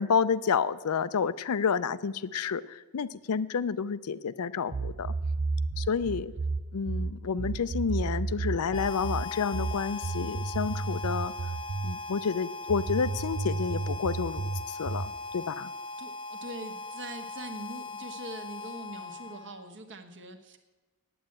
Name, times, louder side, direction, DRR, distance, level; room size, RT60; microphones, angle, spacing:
voice 1, 0.0-5.1 5.8-6.3 6.7-11.3 11.8-15.7, left 6 dB, 75° left, 15 dB, 0.5 m, -30 dB
sound 1, 4.7-12.0 12.7-15.2, right 3 dB, 30° right, 0.4 m, -32 dB
Harmonica, 8.7-19.7, left 3 dB, 25° left, 0.6 m, -40 dB
voice 2, 16.0-20.6, right 2 dB, 55° right, 6 dB, 1.3 m, -43 dB
9.2 x 8.6 x 8.7 m, 1.2 s
head